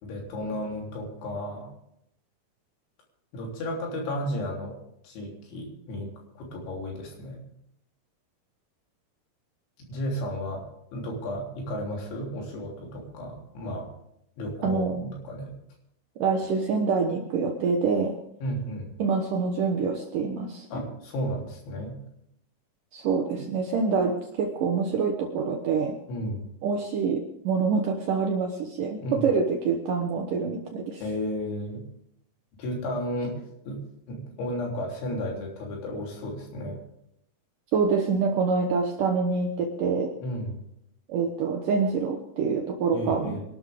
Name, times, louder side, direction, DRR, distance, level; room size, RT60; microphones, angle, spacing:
voice 1, 0.0-1.7 3.3-4.8 5.0-6.1 6.4-7.4 9.9-13.9 14.4-15.5 18.4-18.9 20.7-22.0 26.1-26.4 29.0-29.2 31.0-31.8 32.6-33.3 33.7-33.8 34.1-36.8 40.2-40.6 42.9-43.4, equal, 85° left, -1 dB, 5.8 m, -33 dB
voice 2, 14.6-15.1 16.2-18.2 19.0-20.7 22.9-26.0 26.6-31.0 37.7-40.1 41.1-43.4, right 5 dB, 70° right, 3 dB, 2.0 m, -26 dB
23.5 x 12.5 x 3.6 m, 0.75 s
omnidirectional pair, 5.2 m